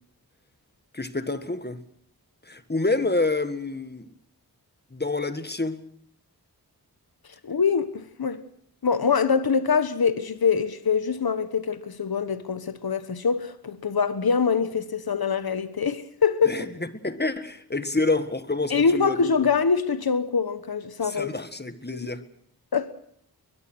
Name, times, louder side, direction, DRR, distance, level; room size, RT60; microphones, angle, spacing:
voice 1, 0.9-1.8 2.5-4.1 4.9-5.8 16.4-19.3 21.0-22.2, left 2 dB, 25° left, 1.8 m, -28 dB
voice 2, 7.4-8.4 8.8-16.6 18.7-21.3 22.0-22.1 22.7-22.9, left 5 dB, 70° left, 1.3 m, -24 dB
22.0 x 21.5 x 6.3 m
wide cardioid pair, 75°, 38 cm